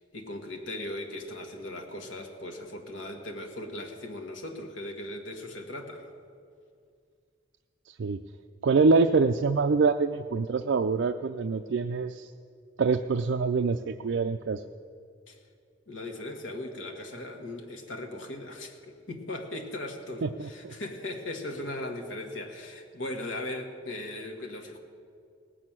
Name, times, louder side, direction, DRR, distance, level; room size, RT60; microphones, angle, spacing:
voice 1, 0.0-6.1 15.3-15.4 15.9-24.8, left 1 dB, 85° left, 3 dB, 1.6 m, -38 dB
voice 2, 7.9-8.2 8.6-12.3 12.8-14.6 20.2-20.7, right 4 dB, 70° right, 7 dB, 0.4 m, -25 dB
18.5 x 6.3 x 8.9 m, 2.3 s
head